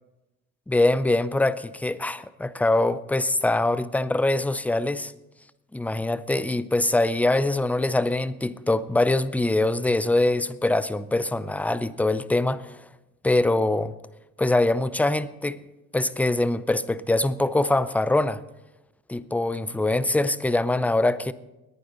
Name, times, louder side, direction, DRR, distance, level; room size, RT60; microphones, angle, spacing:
voice 1, 0.7-5.1 5.7-12.8 13.2-13.9 14.4-15.6 15.9-18.4 19.1-21.3, left 2 dB, 5° left, 0.5 m, -23 dB
20.5 x 9.5 x 4.0 m
hypercardioid pair, 55°, 43 cm